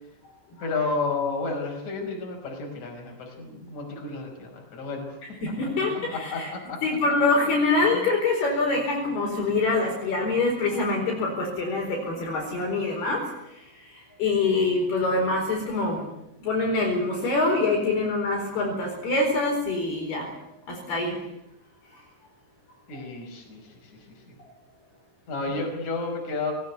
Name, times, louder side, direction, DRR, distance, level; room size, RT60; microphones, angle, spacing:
voice 1, 0.6-5.2 5.6-6.8 7.9-8.1 22.9-23.9 25.3-26.5, left 3 dB, 35° left, 1 dB, 6.3 m, -31 dB
voice 2, 5.4-6.5 6.8-13.2 14.2-16.0 16.4-20.2 20.9-21.1, left 3 dB, 55° left, 0 dB, 6.2 m, -25 dB
21.0 x 18.5 x 9.6 m, 0.82 s
omnidirectional pair, 5.5 m